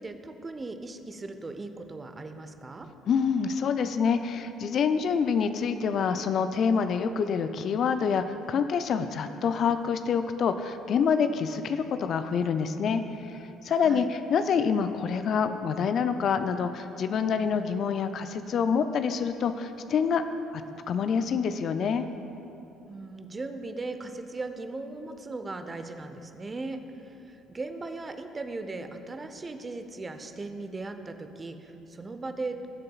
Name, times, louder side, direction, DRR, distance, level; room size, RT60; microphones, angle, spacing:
voice 1, 0.0-2.9 13.8-14.1 22.9-32.7, right 3 dB, 25° right, 7 dB, 0.8 m, -38 dB
voice 2, 3.1-13.0 13.3-13.4 13.6-20.2 20.5-22.1, left 6 dB, 50° left, 9 dB, 0.4 m, -26 dB
20.0 x 7.5 x 2.4 m, 2.9 s
hypercardioid pair, 55°, 0 cm